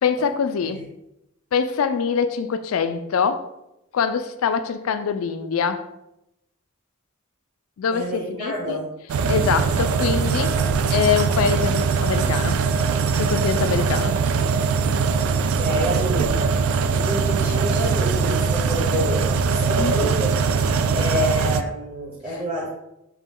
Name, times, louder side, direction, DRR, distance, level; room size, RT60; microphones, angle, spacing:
voice 1, 0.0-0.8 1.5-3.5 3.9-5.9 7.8-8.8 9.3-10.6 10.9-12.6 13.2-14.2 19.8-20.1, left 6 dB, 65° left, 0.4 m, -24 dB
voice 2, 7.9-8.9 15.2-16.6 16.9-20.3 20.9-22.7, equal, 30° right, 0.8 m, -28 dB
sound 1, 9.1-21.6, right 5 dB, 70° right, 0.3 m, -21 dB
4.9 x 2.2 x 3.6 m
head